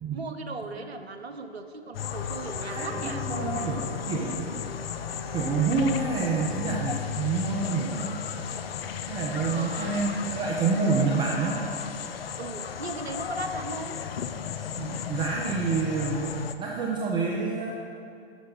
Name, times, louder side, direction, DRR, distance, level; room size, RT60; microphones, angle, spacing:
voice 1, 0.1-3.2 9.4-10.0 12.4-14.0, right 3 dB, 80° right, 7 dB, 0.7 m, -38 dB
sound 1, 1.9-16.5, left 8 dB, 70° left, 0.5 m, -34 dB
Wind instrument woodwind instrument, 2.0-7.7, equal, 35° right, 0.9 m, -46 dB
voice 2, 2.7-4.6 5.3-8.1 9.0-11.6 14.8-17.7, right 4 dB, 15° right, -2 dB, 0.4 m, -28 dB
6.1 x 6.1 x 5.4 m, 2.5 s
figure-of-eight pair, 105°, 31 cm